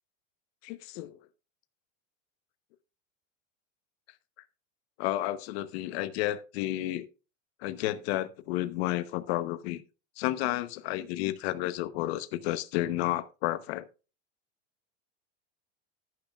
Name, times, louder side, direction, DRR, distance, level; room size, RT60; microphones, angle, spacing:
voice 1, 0.6-1.2 5.0-7.0 7.6-9.8 10.2-13.9, left 15 dB, 55° left, 1.0 m, -31 dB
11.0 x 10.5 x 2.4 m
supercardioid pair, 150°, 37 cm